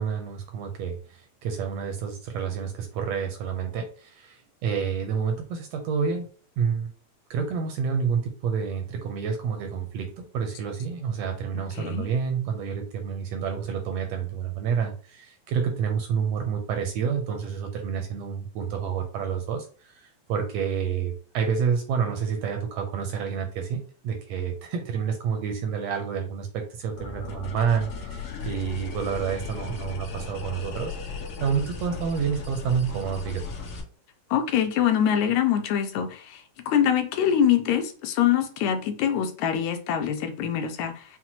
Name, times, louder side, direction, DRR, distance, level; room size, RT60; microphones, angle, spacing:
voice 1, 0.0-6.3 6.6-6.9 7.3-33.4, right 6 dB, 80° right, 4 dB, 1.6 m, -29 dB
voice 2, 11.8-12.1 34.3-41.0, left 9 dB, 85° left, 6 dB, 2.0 m, -24 dB
sound 1, 27.0-33.8, left 4 dB, 60° left, 1.8 m, -36 dB
5.7 x 2.1 x 2.9 m, 0.40 s
omnidirectional pair, 3.3 m